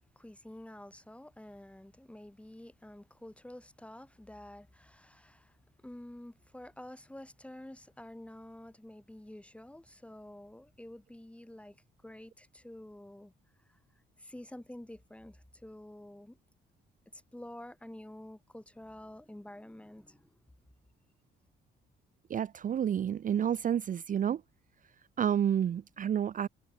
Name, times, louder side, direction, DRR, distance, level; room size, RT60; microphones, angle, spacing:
voice 1, 0.0-5.6 5.8-11.8 12.0-13.3 14.2-16.4 17.1-20.3, left 1 dB, 5° left, 2.6 m, -49 dB
voice 2, 22.3-24.4 25.2-26.5, right 9 dB, 45° right, 0.5 m, -30 dB
cardioid pair, 90°, 20 cm